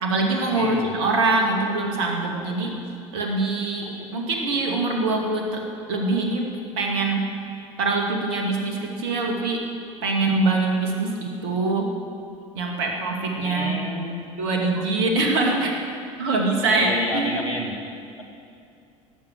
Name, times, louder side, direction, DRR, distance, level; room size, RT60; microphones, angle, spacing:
voice 1, 0.0-2.7 3.1-7.4 7.8-9.7 10.0-11.9 12.5-13.8 14.4-15.7 16.2-16.9 17.1-17.4, right 3 dB, 65° right, 2 dB, 2.3 m, -24 dB
voice 2, 0.6-0.9 2.4-2.7 3.8-4.1 6.0-6.1 7.3-7.6 11.1-11.2 13.3-14.3 14.8-14.9 16.6-17.8 18.2-18.3, left 1 dB, 85° left, 0 dB, 1.9 m, -31 dB
17.5 x 7.3 x 7.7 m, 2.5 s
figure-of-eight pair, 65°, 17 cm